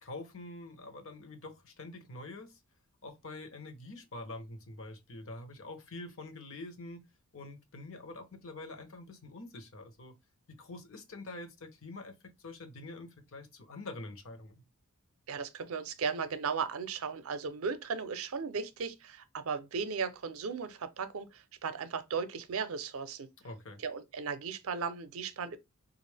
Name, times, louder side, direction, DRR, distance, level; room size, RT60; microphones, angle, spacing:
voice 1, 0.0-2.6 3.0-7.0 7.3-10.2 10.5-14.6 23.4-23.8, left 2 dB, 65° left, 0.8 m, -46 dB
voice 2, 15.3-23.3 23.8-25.6, right 5 dB, 70° right, 0.5 m, -36 dB
3.5 x 2.5 x 3.2 m
head